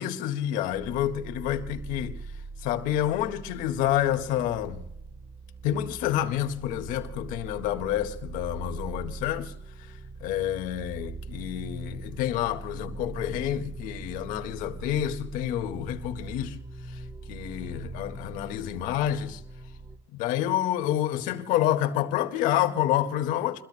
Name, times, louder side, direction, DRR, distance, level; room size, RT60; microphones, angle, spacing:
voice 1, 0.0-2.2 2.6-4.8 5.6-9.5 9.8-16.6 16.9-17.0 17.3-19.4 20.1-23.6, left 12 dB, 65° left, 1.9 m, -28 dB
sound 1, 0.7-20.0, right 3 dB, 10° right, 3.0 m, -41 dB
29.0 x 22.0 x 2.2 m
supercardioid pair, 110°, 15 cm